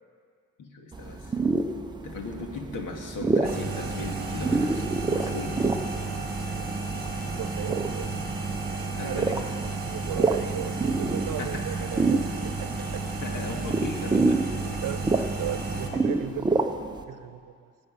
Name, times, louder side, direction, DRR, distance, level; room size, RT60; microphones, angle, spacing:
voice 1, 0.6-1.4 2.0-5.7 9.0-9.4 11.4-11.6 13.2-14.8, left 3 dB, 75° left, 2 dB, 2.0 m, -37 dB
sound 1, 0.9-17.0, right 3 dB, 15° right, 0.6 m, -29 dB
sound 2, 3.4-15.9, right 3 dB, 30° right, 1.7 m, -32 dB
voice 2, 7.4-8.1 9.0-9.4 9.8-13.1 14.8-15.1 15.4-16.6 17.1-17.7, right 11 dB, 75° right, 11 dB, 0.8 m, -36 dB
18.0 x 6.3 x 9.6 m, 2.1 s
wide cardioid pair, 175°, 32 cm